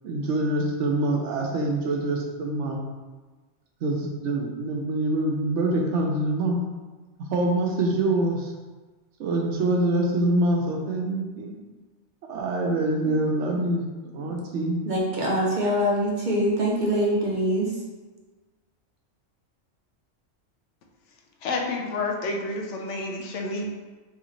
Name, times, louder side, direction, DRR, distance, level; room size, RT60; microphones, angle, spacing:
voice 1, 0.0-2.8 3.8-6.6 7.2-8.5 9.2-11.5 12.3-13.8 14.1-14.8, right 2 dB, 75° right, 1 dB, 0.9 m, -25 dB
voice 2, 14.8-17.7, equal, 50° right, -3 dB, 0.7 m, -24 dB
voice 3, 21.4-23.7, left 3 dB, 80° left, 1 dB, 0.9 m, -29 dB
3.1 x 3.1 x 3.7 m, 1.3 s
omnidirectional pair, 1.2 m